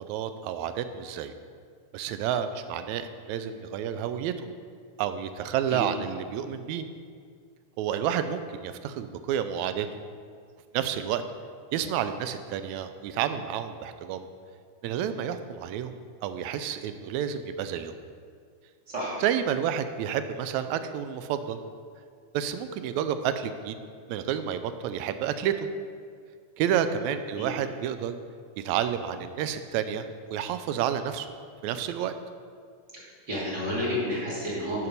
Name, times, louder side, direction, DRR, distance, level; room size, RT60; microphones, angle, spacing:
voice 1, 0.1-1.3 1.9-4.3 5.0-6.9 7.8-9.9 10.7-11.2 11.7-14.3 14.8-16.0 16.2-17.9 19.2-21.6 22.3-23.8 24.1-25.7 26.6-28.2 28.6-30.1 30.3-31.3 31.6-32.1, right 9 dB, 80° right, 10 dB, 1.9 m, -30 dB
voice 2, 18.9-19.2 27.4-27.5 33.3-34.9, equal, 35° right, -8 dB, 3.1 m, -30 dB
9.4 x 5.9 x 5.3 m, 2.1 s
omnidirectional pair, 3.3 m